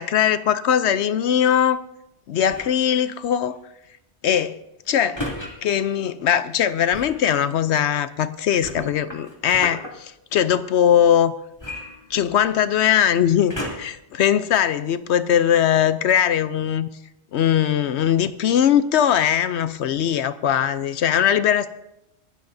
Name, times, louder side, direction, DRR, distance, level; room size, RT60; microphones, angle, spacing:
voice 1, 0.0-1.8 2.3-3.6 4.2-4.6 4.9-5.2 5.6-11.3 12.1-16.9 17.3-21.7, left 9 dB, 75° left, 13 dB, 0.9 m, -20 dB
sound 1, 2.5-2.9 5.2-5.5 6.9-7.2 8.6-9.9 11.6-12.6 13.5-14.0 14.7-14.8, left 1 dB, 25° left, 2.6 m, -33 dB
24.0 x 12.5 x 2.6 m, 0.87 s
omnidirectional pair, 1.1 m